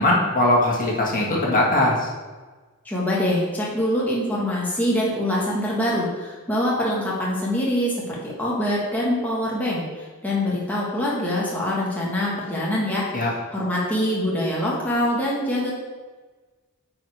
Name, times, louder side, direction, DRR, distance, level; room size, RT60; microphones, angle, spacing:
voice 1, 0.0-2.1 13.1-13.3, left 1 dB, 40° left, -2 dB, 1.8 m, -20 dB
voice 2, 2.8-13.1 13.5-15.7, left 1 dB, 10° left, -6 dB, 1.4 m, -24 dB
9.1 x 5.0 x 4.8 m, 1.3 s
head